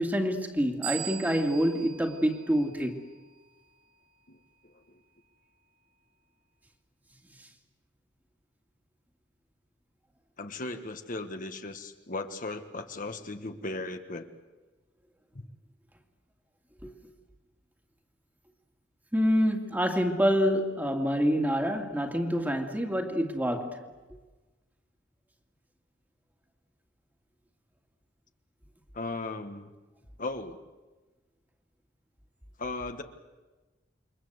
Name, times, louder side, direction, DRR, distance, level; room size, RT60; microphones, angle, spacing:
voice 1, 0.0-3.0 16.8-16.9 19.1-23.9, equal, 10° right, 2.4 m, -27 dB
sound 1, 0.8-3.3, right 12 dB, 50° right, 3.7 m, -40 dB
voice 2, 4.3-5.0 10.4-14.3 15.3-15.4 28.9-29.7 30.2-30.6 32.6-33.0, left 2 dB, 45° left, 1.5 m, -37 dB
28.5 x 23.5 x 8.1 m
head